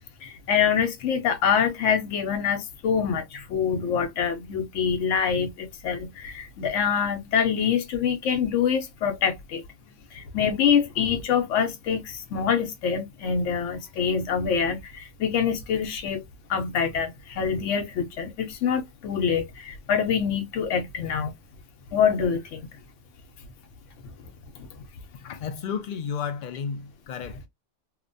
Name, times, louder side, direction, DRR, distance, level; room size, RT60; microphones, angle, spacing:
voice 1, 0.2-9.6 10.1-16.2 16.5-21.3 21.9-22.7, left 7 dB, 85° left, 1.0 m, -25 dB
voice 2, 25.2-27.5, left 7 dB, 60° left, 0.5 m, -32 dB
2.9 x 2.1 x 2.5 m
omnidirectional pair, 1.2 m